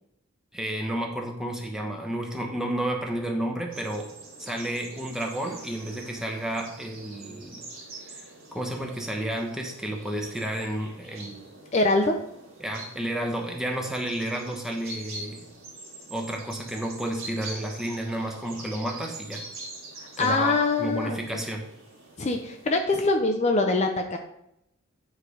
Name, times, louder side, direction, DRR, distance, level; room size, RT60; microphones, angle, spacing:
voice 1, 0.5-4.1 4.4-7.6 8.1-8.2 8.5-11.4 12.6-15.5 16.1-19.5 20.2-21.6, right 1 dB, ahead, 1 dB, 0.9 m, -31 dB
sound 1, 3.7-22.7, right 2 dB, 65° right, 2.0 m, -45 dB
voice 2, 11.7-12.2 20.0-21.5 22.2-24.2, left 3 dB, 35° left, 4 dB, 0.5 m, -24 dB
9.1 x 3.3 x 5.0 m, 0.82 s
head